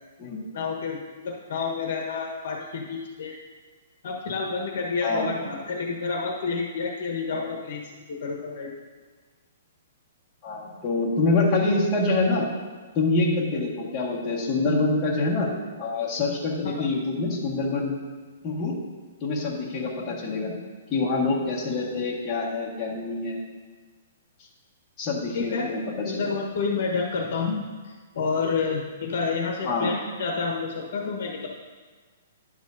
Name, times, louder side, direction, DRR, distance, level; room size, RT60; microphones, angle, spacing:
voice 1, 0.5-3.4 4.0-7.8 8.1-8.7 16.6-16.8 25.3-25.7 26.0-31.5, left 4 dB, 55° left, 1 dB, 1.1 m, -29 dB
voice 2, 10.4-12.5 12.9-15.5 15.8-17.9 18.4-18.8 19.2-20.5 20.9-23.4 25.0-26.4 29.7-29.9, left 3 dB, 15° left, -7 dB, 1.7 m, -26 dB
10.5 x 8.0 x 2.7 m, 1.4 s
hypercardioid pair, 165°, 0 cm